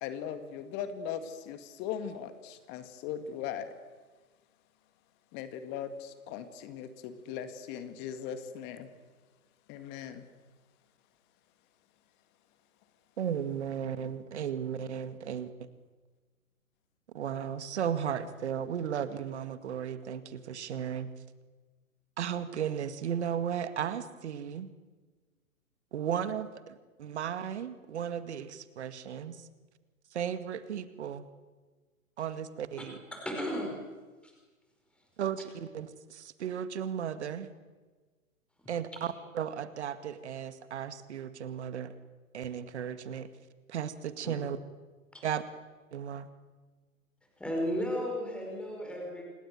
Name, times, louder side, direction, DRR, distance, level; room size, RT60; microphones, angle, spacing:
voice 1, 0.0-3.7 5.3-8.9 9.7-10.2, left 8 dB, 25° left, 10 dB, 1.8 m, -39 dB
voice 2, 13.2-15.5 17.1-21.1 22.2-24.7 25.9-29.5 30.1-31.3 32.2-33.0 35.2-37.5 38.7-41.9 42.3-43.3 43.7-44.6 45.2-45.4 45.9-46.3, right 8 dB, 50° right, 11 dB, 2.1 m, -35 dB
voice 3, 33.1-33.8 34.2-34.3 45.1-45.2 47.4-49.2, equal, ahead, 0 dB, 5.1 m, -34 dB
28.0 x 19.0 x 9.3 m, 1.3 s
figure-of-eight pair, 125°, 44 cm